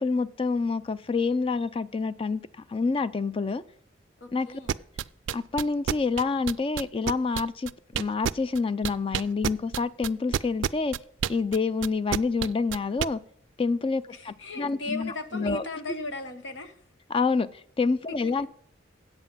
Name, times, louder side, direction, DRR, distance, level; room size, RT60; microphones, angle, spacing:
voice 1, 0.0-2.4 2.7-3.6 4.3-4.5 5.3-11.0 11.3-13.2 13.6-15.6 17.1-17.5 17.8-18.5, left 4 dB, 30° left, 0.4 m, -27 dB
voice 2, 4.2-4.8 14.1-16.7 18.1-18.5, left 2 dB, 85° left, 1.1 m, -37 dB
sound 1, 4.7-8.6 8.8-13.1, right 9 dB, 85° right, 0.3 m, -28 dB
8.2 x 7.9 x 5.6 m
head